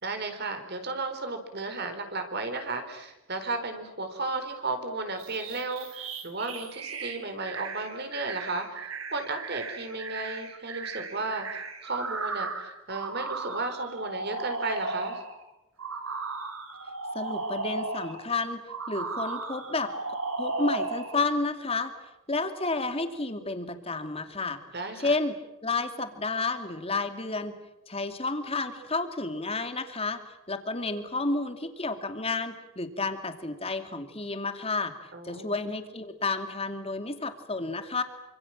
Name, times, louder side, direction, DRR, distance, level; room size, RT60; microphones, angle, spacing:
voice 1, 0.0-8.8 9.1-15.2 24.7-25.1 35.1-35.5, right 3 dB, 50° right, 7 dB, 4.5 m, -34 dB
sound 1, 5.2-15.3 15.8-18.2 18.7-21.2, right 3 dB, 75° right, 4.4 m, -35 dB
voice 2, 17.1-18.6 18.9-19.9 20.4-21.9 22.3-24.6 25.0-25.4 25.6-27.5 27.9-30.2 30.5-34.9 35.2-38.0, left 3 dB, 25° left, 7 dB, 2.6 m, -31 dB
28.0 x 26.0 x 7.5 m, 0.97 s
head